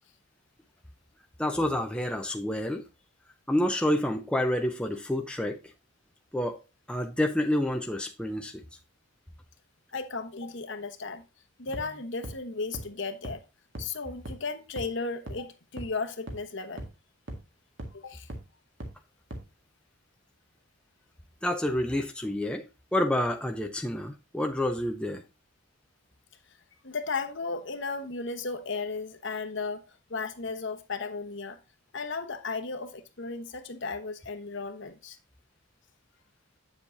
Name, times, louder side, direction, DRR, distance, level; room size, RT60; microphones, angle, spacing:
voice 1, 1.4-2.8 3.5-5.6 6.3-6.6 6.9-8.6 21.4-22.6 22.9-25.2, left 1 dB, 5° left, 0.6 m, -28 dB
voice 2, 9.9-11.2 11.6-13.4 13.8-16.8 17.9-18.3 26.8-31.6 31.9-35.2, left 4 dB, 55° left, 1.1 m, -35 dB
sound 1, 11.7-11.8 12.2-12.3 12.7-12.8 13.2-13.3 13.8-13.9 14.3-14.4 14.8-14.9 15.3-15.4 15.8-15.9 16.3-16.4 16.8-16.9 17.3-17.4 17.8-17.9 18.3-18.4 18.8-18.9 19.3-19.4, right 1 dB, 55° right, 1.9 m, -37 dB
8.7 x 7.2 x 2.7 m
head